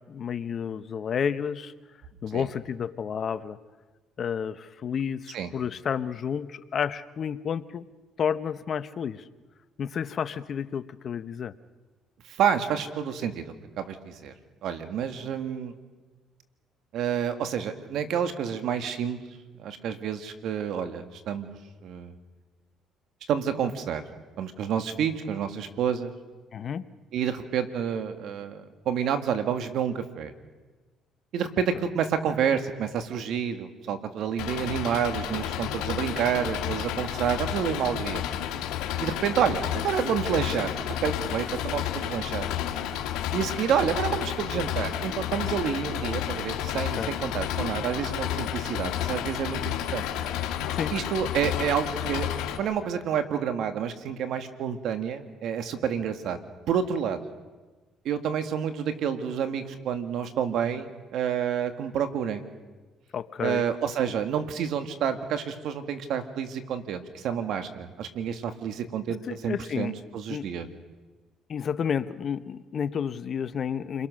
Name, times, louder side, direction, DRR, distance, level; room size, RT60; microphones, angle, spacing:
voice 1, 0.1-1.7 2.2-3.6 4.2-7.9 8.2-9.2 9.8-11.5 26.5-26.8 46.9-47.1 50.7-50.9 63.1-63.6 69.3-69.9 70.3-70.4 71.5-74.1, left 7 dB, 50° left, 13 dB, 1.0 m, -31 dB
voice 2, 12.4-13.4 13.8-14.3 14.6-15.7 16.9-19.2 19.6-21.5 21.8-22.1 23.3-24.0 24.4-26.1 27.1-30.3 31.3-38.2 39.0-40.8 41.0-42.5 43.3-50.1 50.9-56.4 56.7-57.2 58.1-62.4 63.4-70.7, right 8 dB, 70° right, 8 dB, 2.0 m, -29 dB
Engine, 34.4-52.6, left 11 dB, 85° left, 2.2 m, -31 dB
29.0 x 22.5 x 6.4 m, 1.3 s
cardioid pair, 90°, 0 cm